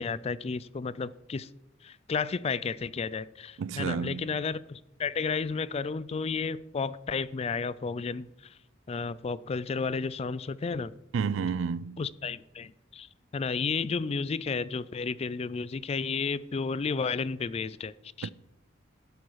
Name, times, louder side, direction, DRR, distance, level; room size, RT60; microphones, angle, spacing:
voice 1, 0.0-1.5 1.8-8.6 8.9-10.9 12.0-17.9 18.2-18.3, left 5 dB, 35° left, 0.4 m, -32 dB
voice 2, 3.6-4.3 11.1-12.0 18.2-18.3, right 6 dB, 85° right, 0.4 m, -30 dB
12.0 x 8.2 x 4.7 m
head